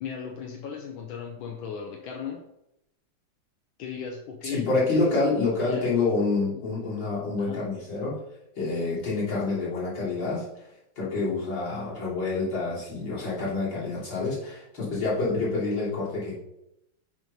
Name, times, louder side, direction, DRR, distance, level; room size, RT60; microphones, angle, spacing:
voice 1, 0.0-2.4 3.8-4.6 4.9-5.3 5.6-5.9 6.6-7.6 9.5-9.6, left 7 dB, 85° left, 2 dB, 1.6 m, -37 dB
voice 2, 4.4-8.2 8.6-10.6 11.0-16.4, left 3 dB, 70° left, -7 dB, 3.6 m, -27 dB
6.2 x 5.3 x 5.3 m, 0.84 s
omnidirectional pair, 2.1 m